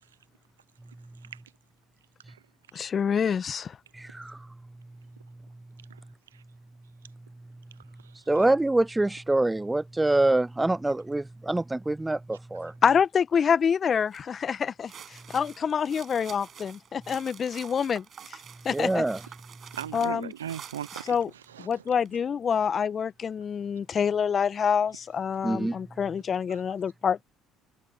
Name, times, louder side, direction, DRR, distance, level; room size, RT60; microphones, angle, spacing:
voice 1, 2.7-3.8 12.8-18.4 18.6-19.0 19.9-20.3 21.1-21.3 21.6-27.2, left 7 dB, 40° left, 1.4 m, -26 dB
voice 2, 3.9-4.5 8.1-12.7 18.7-19.2 25.4-25.8, right 2 dB, 10° right, 0.4 m, -25 dB
sound 1, 14.1-14.3 14.7-22.1, right 8 dB, 45° right, 7.6 m, -47 dB
voice 3, 19.7-21.8 26.5-26.6, right 10 dB, 85° right, 1.0 m, -39 dB
hypercardioid pair, 60°, 0 cm